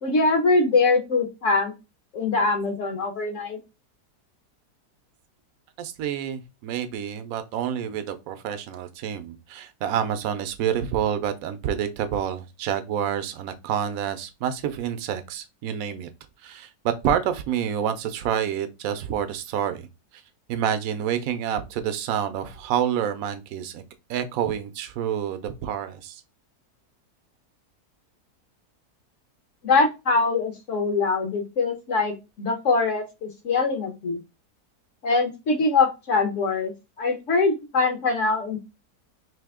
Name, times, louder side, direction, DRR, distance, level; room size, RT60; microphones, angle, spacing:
voice 1, 0.0-1.7 2.1-3.6 29.6-34.2 35.0-38.6, left 3 dB, 60° left, 1.0 m, -23 dB
voice 2, 5.8-16.1 16.4-19.9 20.5-23.8 24.1-26.2, right 9 dB, 70° right, 1.0 m, -28 dB
3.4 x 2.7 x 3.5 m
omnidirectional pair, 1.7 m